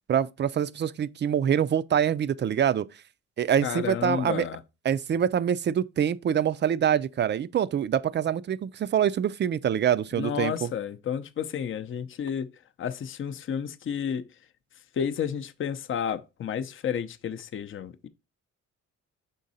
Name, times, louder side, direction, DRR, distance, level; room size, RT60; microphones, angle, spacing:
voice 1, 0.1-2.9 3.4-4.5 4.8-10.7, right 9 dB, 40° right, 0.4 m, -25 dB
voice 2, 3.6-4.6 10.2-12.5 12.8-14.3 15.0-18.1, left 8 dB, 40° left, 0.6 m, -31 dB
6.2 x 3.8 x 4.0 m
cardioid pair, 90°, 30 cm